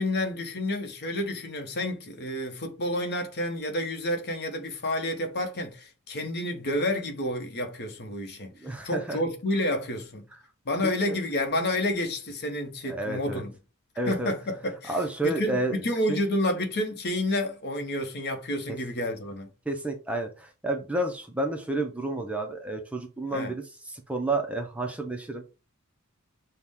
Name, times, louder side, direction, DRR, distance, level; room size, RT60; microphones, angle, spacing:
voice 1, 0.0-10.2 10.6-13.5 14.1-19.5 23.3-23.5, left 1 dB, 50° left, 0.9 m, -30 dB
voice 2, 8.6-9.2 10.8-11.2 12.9-13.4 14.0-14.3 14.9-15.8 16.1-16.2 19.7-25.4, right 2 dB, 5° right, 0.4 m, -30 dB
5.8 x 2.1 x 3.5 m
head